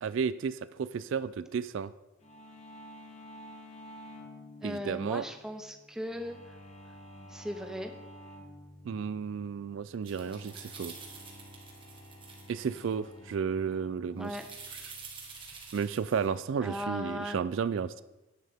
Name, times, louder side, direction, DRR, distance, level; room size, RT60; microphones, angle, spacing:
voice 1, 0.0-1.9 4.6-5.2 8.8-10.9 12.5-14.4 15.7-18.0, right 6 dB, 65° right, 16 dB, 0.3 m, -32 dB
sound 1, 2.2-16.7, left 1 dB, 30° left, 1.1 m, -51 dB
voice 2, 4.6-6.4 7.3-7.9 14.1-14.5 16.6-17.4, equal, 5° right, 6 dB, 0.6 m, -37 dB
sound 2, 10.1-12.9 14.2-16.3, right 5 dB, 25° right, 1.5 m, -48 dB
11.0 x 9.9 x 3.5 m, 1.0 s
head